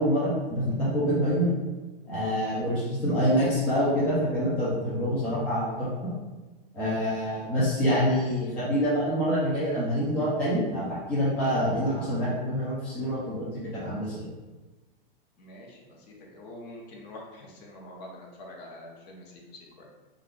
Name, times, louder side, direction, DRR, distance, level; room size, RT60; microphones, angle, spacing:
voice 1, 0.0-1.5 2.1-6.1 6.7-14.3, equal, 5° left, -9 dB, 0.3 m, -26 dB
voice 2, 15.4-19.9, left 1 dB, 45° left, -1 dB, 0.7 m, -46 dB
2.4 x 2.3 x 3.5 m, 1.2 s
hypercardioid pair, 145°, 29 cm